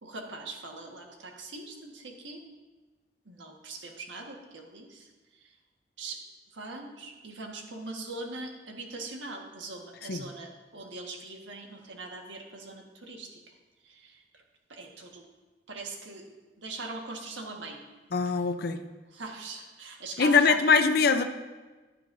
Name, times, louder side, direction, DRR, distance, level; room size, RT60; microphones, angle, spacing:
voice 1, 0.0-2.4 3.2-5.1 6.0-6.2 6.5-13.4 13.8-14.4 14.7-15.2 15.7-16.3 16.6-17.8 19.1-20.6, right 3 dB, 85° right, 2 dB, 1.5 m, -41 dB
voice 2, 18.1-18.8 20.2-21.2, left 5 dB, 55° left, 8 dB, 0.5 m, -22 dB
15.0 x 10.0 x 2.6 m, 1.2 s
head